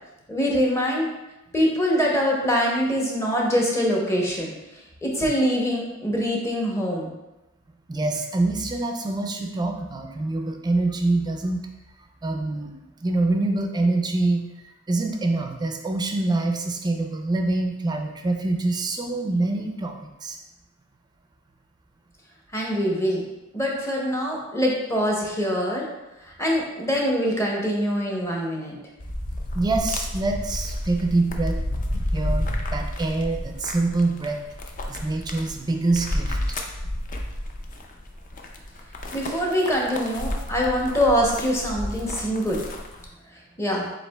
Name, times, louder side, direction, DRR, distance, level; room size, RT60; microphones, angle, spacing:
voice 1, 0.3-1.1 1.5-4.5 5.0-7.1 22.5-23.2 23.5-25.9 26.4-28.7 39.1-42.6 43.6-43.9, equal, 15° left, -2 dB, 0.8 m, -24 dB
voice 2, 7.9-11.6 12.2-12.7 13.0-14.4 14.9-19.9 20.2-20.4 29.5-31.6 32.1-34.4 34.9-36.4, right 2 dB, 20° right, 3 dB, 0.4 m, -25 dB
sound 1, 29.0-43.1, left 1 dB, 40° left, 0.4 m, -31 dB
7.3 x 2.8 x 2.3 m, 0.97 s
head